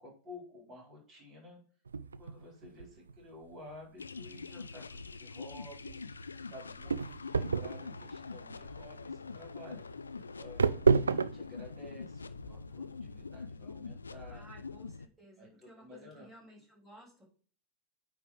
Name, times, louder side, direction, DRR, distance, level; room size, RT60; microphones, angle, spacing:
voice 1, 0.0-1.6 2.0-14.4 15.4-16.3, left 2 dB, 30° right, -1 dB, 4.1 m, -52 dB
sound 1, 1.9-13.3, right 5 dB, 75° right, 0.3 m, -33 dB
sound 2, 4.0-15.1, left 4 dB, 75° left, 0.4 m, -45 dB
voice 2, 14.3-17.2, right 1 dB, 15° right, -4 dB, 4.2 m, -56 dB
9.0 x 3.5 x 4.7 m, 0.42 s
figure-of-eight pair, 90°, 0 cm